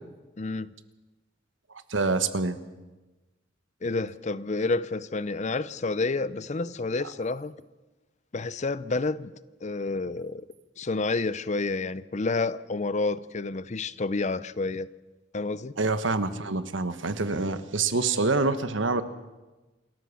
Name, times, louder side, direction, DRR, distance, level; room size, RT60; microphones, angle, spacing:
voice 1, 0.4-0.7 3.8-7.5 8.3-9.3 9.6-10.4 10.8-14.9 15.3-15.7, left 3 dB, 40° left, 0.6 m, -29 dB
voice 2, 1.9-2.6 7.0-7.1 15.8-19.0, right 3 dB, 75° right, 1.3 m, -26 dB
28.0 x 13.5 x 7.2 m
head